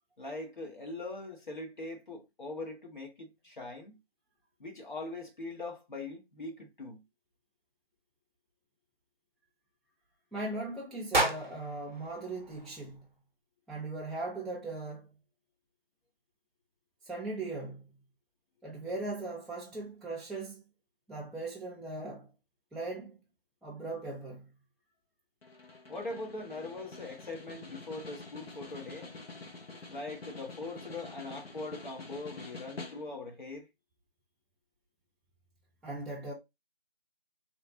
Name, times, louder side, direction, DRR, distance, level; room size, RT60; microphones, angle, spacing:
voice 1, 0.2-4.0 4.6-7.0 25.9-29.1 29.9-33.7, left 2 dB, 55° left, 1.2 m, -41 dB
voice 2, 10.3-13.1 13.7-15.1 17.0-17.9 18.6-20.6 21.1-22.3 22.7-23.2 23.6-24.5 35.8-36.3, right 2 dB, ahead, 0.3 m, -39 dB
sound 1, 11.1-13.3, right 2 dB, 50° right, 0.5 m, -33 dB
Snare drum, 25.4-33.4, left 3 dB, 80° left, 0.9 m, -47 dB
3.1 x 2.0 x 2.7 m
figure-of-eight pair, 170°, 30 cm